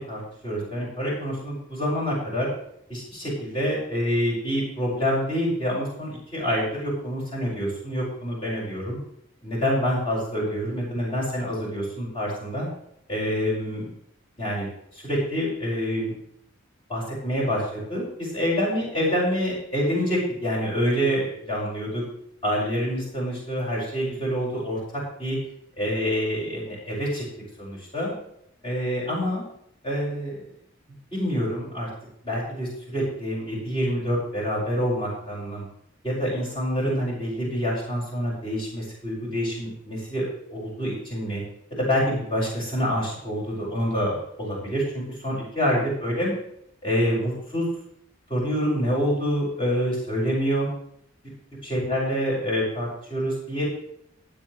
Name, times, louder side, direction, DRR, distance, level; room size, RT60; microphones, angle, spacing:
voice 1, 0.0-2.5 2.9-9.0 9.4-12.7 13.1-13.9 14.4-16.1 16.9-22.0 22.4-25.4 25.8-27.2 27.6-28.1 28.6-29.4 29.8-30.5 31.1-31.9 32.2-35.6 36.0-40.2 40.5-41.4 41.7-46.3 46.8-47.6 48.3-50.7 51.6-53.6, equal, 25° left, -6 dB, 6.0 m, -27 dB
23.0 x 8.1 x 3.4 m, 0.72 s
head